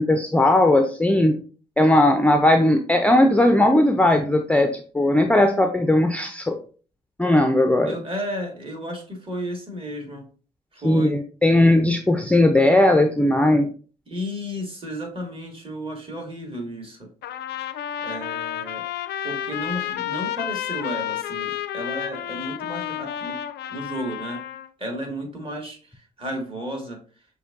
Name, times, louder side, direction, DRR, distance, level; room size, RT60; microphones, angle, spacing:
voice 1, 0.0-1.4 1.8-6.6 7.2-8.0 10.8-13.7, left 1 dB, 5° left, 5 dB, 0.5 m, -18 dB
voice 2, 7.9-10.3 10.7-11.2 14.1-17.1 18.0-18.9 19.2-23.4 23.7-24.4 24.8-27.0, equal, 30° right, 2 dB, 1.9 m, -33 dB
Trumpet, 17.2-24.7, left 11 dB, 60° left, 0.4 m, -31 dB
6.2 x 2.8 x 2.5 m, 0.39 s
hypercardioid pair, 45°, 19 cm